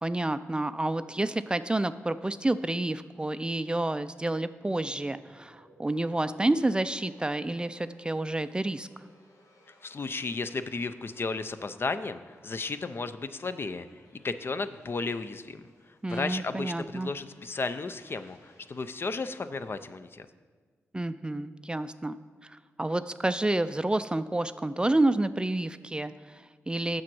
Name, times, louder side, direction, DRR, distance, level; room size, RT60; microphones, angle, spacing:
voice 1, 0.0-8.9 16.0-17.1 20.9-22.2 22.4-27.0, right 2 dB, 20° right, 13 dB, 0.3 m, -29 dB
sound 1, 5.0-19.3, equal, 85° left, 1.4 m, -60 dB
voice 2, 9.8-13.9 14.1-15.7 16.1-20.3, left 3 dB, 45° left, 11 dB, 0.5 m, -34 dB
7.4 x 6.2 x 6.1 m, 1.5 s
cardioid pair, 55°, 5 cm